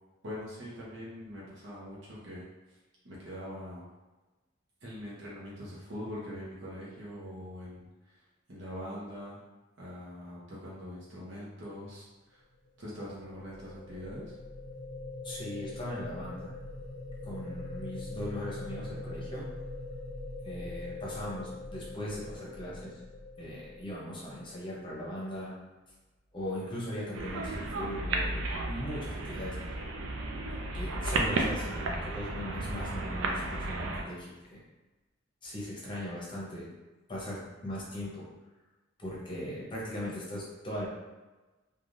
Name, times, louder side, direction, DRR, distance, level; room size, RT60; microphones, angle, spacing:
voice 1, 0.2-2.5 3.0-3.8 4.8-8.2 8.5-9.4 9.8-12.4 12.8-14.4, equal, 65° right, -6 dB, 0.8 m, -43 dB
sound 1, 12.7-24.8, left 2 dB, 75° left, 0.5 m, -42 dB
voice 2, 15.2-16.5 17.2-19.5 20.4-23.0 23.4-25.5 26.3-29.8 30.7-34.6 35.4-36.7 37.1-38.3 39.0-40.9, equal, 25° left, -6 dB, 0.7 m, -39 dB
sound 2, 27.1-34.0, right 2 dB, 80° right, 0.4 m, -33 dB
3.3 x 2.3 x 2.6 m, 1.1 s
head